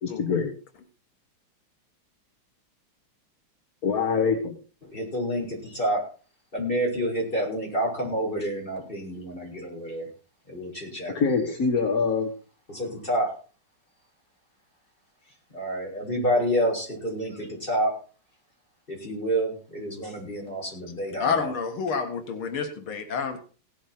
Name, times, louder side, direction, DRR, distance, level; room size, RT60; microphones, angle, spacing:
voice 1, 0.0-0.5 3.8-4.5 11.1-12.3, left 5 dB, 45° left, 4 dB, 2.0 m, -24 dB
voice 2, 4.9-6.0 6.5-10.1 10.5-11.6 12.7-13.3 15.5-17.9 18.9-21.5, equal, 25° left, -1 dB, 6.3 m, -28 dB
voice 3, 21.2-23.4, left 5 dB, 85° left, 6 dB, 2.5 m, -28 dB
17.5 x 7.9 x 5.9 m, 0.39 s
omnidirectional pair, 2.2 m